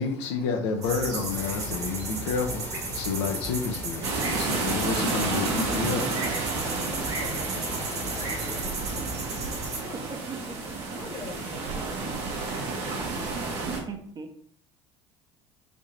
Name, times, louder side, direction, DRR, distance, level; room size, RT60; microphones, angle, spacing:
voice 1, 0.0-6.2, left 5 dB, 70° left, 0.5 m, -30 dB
sound 1, 0.8-9.8, right 3 dB, 50° right, 1.3 m, -34 dB
sound 2, 1.3-8.6, left 1 dB, 15° left, 0.9 m, -42 dB
sound 3, 4.0-13.8, right 3 dB, 70° right, 0.9 m, -31 dB
voice 2, 6.9-9.4 9.8-10.2 11.0-11.8, left 4 dB, 40° left, 1.1 m, -44 dB
voice 3, 9.9-11.0 11.7-12.8 13.6-14.3, right 4 dB, 30° right, 0.6 m, -41 dB
3.3 x 2.7 x 3.9 m
hypercardioid pair, 65°, 15 cm